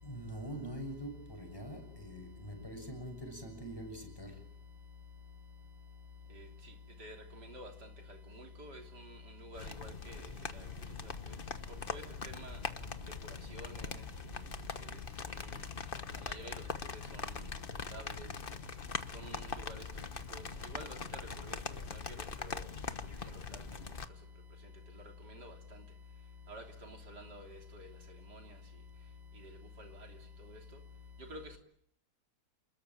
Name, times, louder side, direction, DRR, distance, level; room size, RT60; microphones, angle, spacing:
voice 1, 0.0-4.4, right 1 dB, 15° left, 6.8 m, -44 dB
voice 2, 7.0-7.7 8.3-10.6 11.9-12.6 13.5-14.0 16.2-16.6 17.1-17.3 17.9-18.3 19.1-19.8 20.3-21.0 21.4-22.0 22.4-22.6 23.2-23.6 25.2-25.5 26.5-27.9 28.3-28.5 29.8-29.9 30.5-30.6 31.3-31.6, equal, 80° right, 3.9 m, -48 dB
sound 1, 9.6-24.1, left 5 dB, 35° left, 1.2 m, -42 dB
29.0 x 21.0 x 8.8 m
omnidirectional pair, 1.8 m